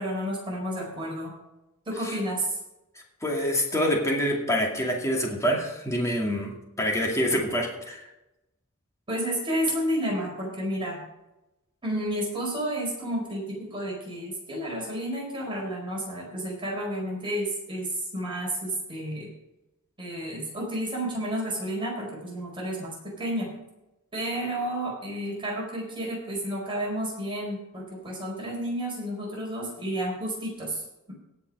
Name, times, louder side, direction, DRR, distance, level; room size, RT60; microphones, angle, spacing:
voice 1, 0.0-1.3 1.9-2.6 9.1-11.0 11.8-19.3 20.0-23.5 24.1-30.8, right 1 dB, 25° right, -3 dB, 4.7 m, -31 dB
voice 2, 3.2-8.1, equal, 15° left, -1 dB, 2.4 m, -26 dB
17.5 x 5.9 x 5.5 m, 0.93 s
head